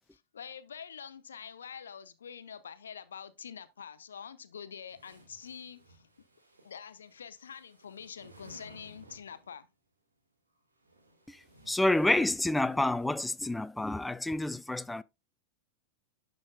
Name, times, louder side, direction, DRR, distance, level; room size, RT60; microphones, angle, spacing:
voice 1, 0.1-6.0 6.6-9.7, left 7 dB, 70° left, 0.6 m, -46 dB
sound 1, 4.9-9.6 10.6-13.0, right 1 dB, 75° right, 1.8 m, -57 dB
voice 2, 11.7-15.0, left 2 dB, 5° left, 0.3 m, -28 dB
11.5 x 5.2 x 2.2 m
figure-of-eight pair, 90°, 0 cm